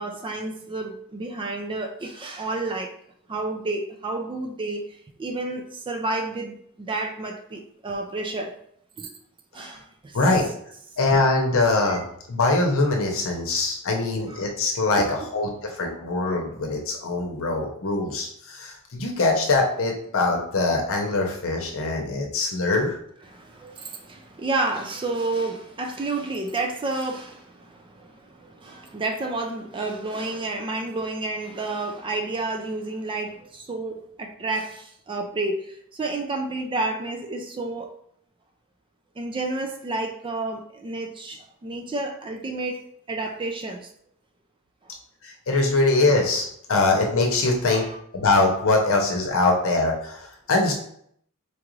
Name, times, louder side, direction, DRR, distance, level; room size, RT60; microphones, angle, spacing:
voice 1, 0.0-2.9 3.3-4.8 5.2-8.6 9.0-9.1 9.5-10.5 11.8-12.0 14.3-14.4 23.3-37.9 39.2-42.8 43.1-43.9 47.7-48.0, right 2 dB, 20° right, 4 dB, 0.4 m, -30 dB
voice 2, 10.1-10.5 11.0-23.0 45.2-47.9 48.1-50.7, left 2 dB, 65° left, 1 dB, 0.8 m, -23 dB
4.5 x 2.5 x 3.1 m, 0.67 s
head